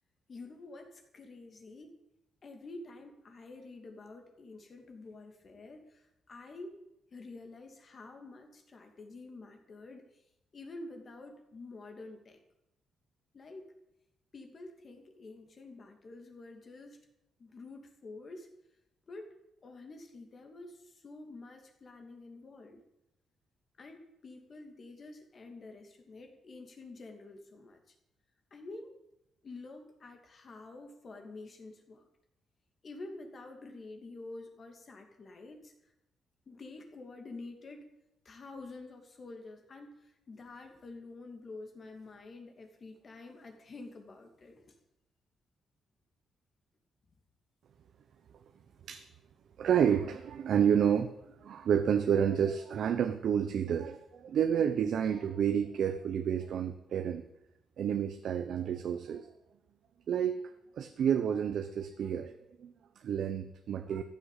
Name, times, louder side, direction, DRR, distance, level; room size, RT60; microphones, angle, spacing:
voice 1, 0.3-1.9 2.4-6.8 7.1-10.0 10.5-12.4 13.3-13.6 14.3-17.0 17.4-18.5 19.1-19.3 19.6-22.8 23.8-27.8 28.5-28.9 29.4-32.1 32.8-35.7 36.5-37.9 38.2-44.8, left 2 dB, 35° left, 5 dB, 2.6 m, -48 dB
voice 2, 49.6-57.2 57.8-59.3 60.1-60.4 60.7-64.0, right 8 dB, 60° right, 7 dB, 1.0 m, -30 dB
14.5 x 9.3 x 8.4 m, 0.87 s
cardioid pair, 135°, 0 cm